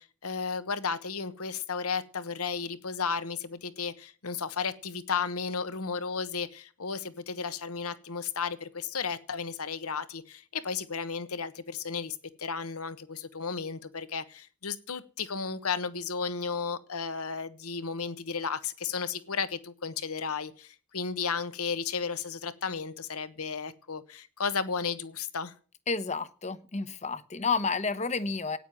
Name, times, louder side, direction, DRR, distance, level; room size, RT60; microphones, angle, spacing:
voice 1, 0.0-25.5, left 5 dB, 80° left, 1.2 m, -34 dB
voice 2, 25.9-28.6, left 4 dB, 30° left, 0.9 m, -30 dB
9.3 x 9.2 x 9.8 m
head